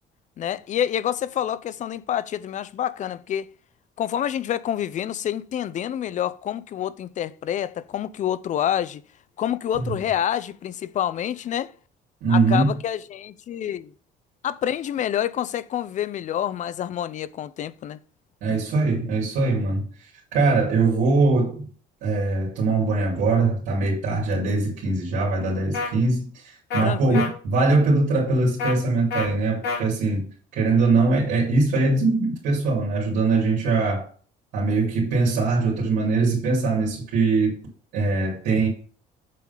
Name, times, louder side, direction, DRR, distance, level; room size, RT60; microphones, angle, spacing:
voice 1, 0.4-3.5 4.0-9.0 9.4-11.7 12.3-13.9 14.4-18.0 18.5-18.6 26.8-27.3, left 10 dB, 45° left, 0.5 m, -27 dB
voice 2, 12.2-12.7 18.4-19.9 20.3-21.6 22.0-30.3 30.5-34.1 34.5-37.6 37.9-38.7, right 3 dB, 90° right, 2.6 m, -22 dB
sound 1, 25.7-25.9 26.7-26.8 27.1-27.3 28.6-28.7 29.1-29.3 29.6-29.8, left 4 dB, 75° left, 3.2 m, -26 dB
7.4 x 3.8 x 5.5 m
cardioid pair, 110°, 17 cm